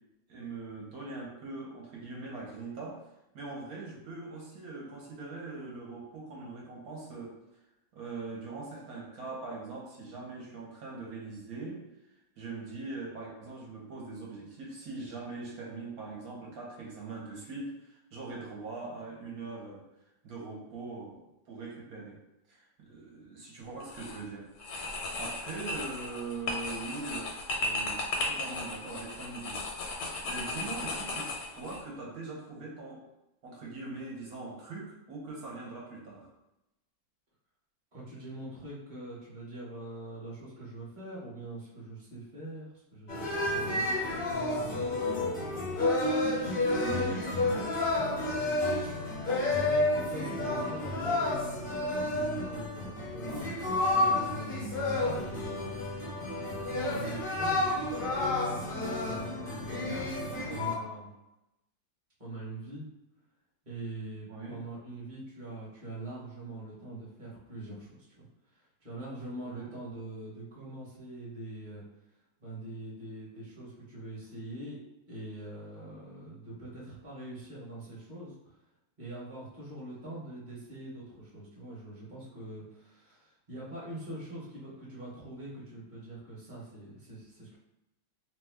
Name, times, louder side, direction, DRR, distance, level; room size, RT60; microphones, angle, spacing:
voice 1, 0.3-3.0 3.3-7.4 7.9-19.9 20.2-22.2 22.5-24.8 25.2-27.3 27.6-29.6 30.2-33.0 33.4-36.3 46.8-48.0 64.3-64.6 69.5-69.7, right 3 dB, 65° right, -3 dB, 1.1 m, -42 dB
sound 1, 23.8-24.2 24.6-31.8, left 2 dB, 85° left, 1.3 m, -36 dB
voice 2, 37.9-45.6 49.4-57.7 58.4-61.1 62.2-62.8 63.6-67.9 68.2-68.3 68.5-71.8 72.4-74.8 75.1-78.5 79.0-87.6, right 1 dB, 30° right, -7 dB, 1.0 m, -43 dB
sound 2, 43.1-60.7, left 2 dB, 60° left, 0.5 m, -30 dB
2.9 x 2.2 x 3.4 m, 0.94 s
omnidirectional pair, 1.9 m